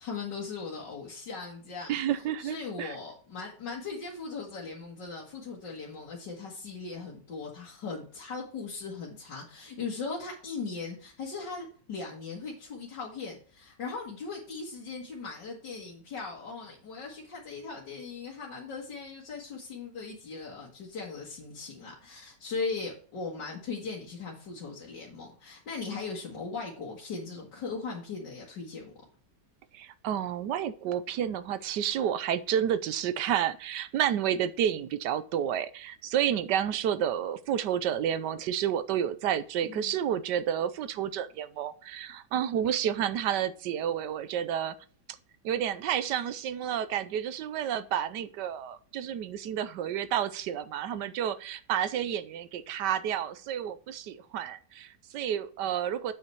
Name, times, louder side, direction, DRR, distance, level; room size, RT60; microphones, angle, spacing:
voice 1, 0.0-1.9 2.4-28.9 39.6-40.0, left 4 dB, 75° left, -4 dB, 2.4 m, -39 dB
voice 2, 1.9-3.0 29.7-44.7 45.4-56.1, right 9 dB, 75° right, 14 dB, 1.3 m, -30 dB
8.7 x 5.5 x 4.6 m, 0.43 s
omnidirectional pair, 1.9 m